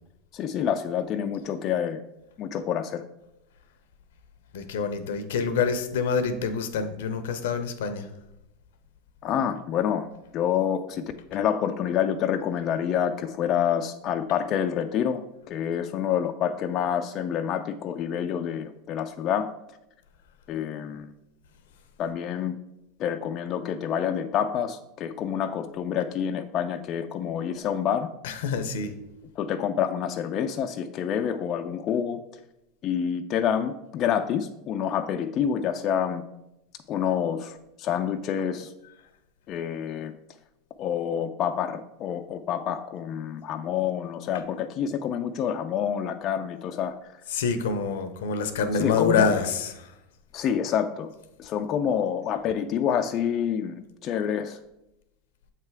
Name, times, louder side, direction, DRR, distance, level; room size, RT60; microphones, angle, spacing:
voice 1, 0.3-2.0 2.4-3.0 9.2-10.1 10.3-11.0 11.3-15.2 15.5-19.5 20.5-21.1 22.0-22.6 23.0-28.1 29.4-32.2 32.8-36.2 36.9-38.7 39.5-40.1 40.8-47.0 48.8-49.3 50.3-51.1 51.4-54.6, left 8 dB, 40° left, 6 dB, 0.4 m, -27 dB
voice 2, 4.5-8.1 28.2-28.9 47.3-49.9, left 5 dB, 80° left, 9 dB, 0.7 m, -26 dB
7.4 x 3.3 x 4.6 m, 0.87 s
supercardioid pair, 120°, 0 cm